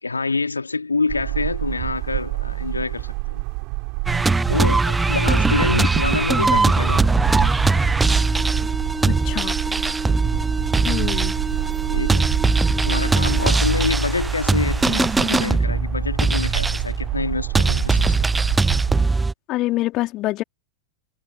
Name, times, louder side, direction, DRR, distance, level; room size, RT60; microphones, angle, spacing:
voice 1, 0.0-3.4 4.5-7.0 7.3-7.5 11.8-12.5 12.8-18.3, left 3 dB, 80° left, 2.0 m, -26 dB
sound 1, 1.1-19.1, right 35 dB, 45° right, 4.1 m, -28 dB
sound 2, 4.1-19.3, right 3 dB, 10° right, 0.6 m, -20 dB
voice 2, 9.0-9.5 10.8-11.4 19.5-20.4, left 17 dB, 35° left, 2.8 m, -25 dB
figure-of-eight pair, 90°, 0 cm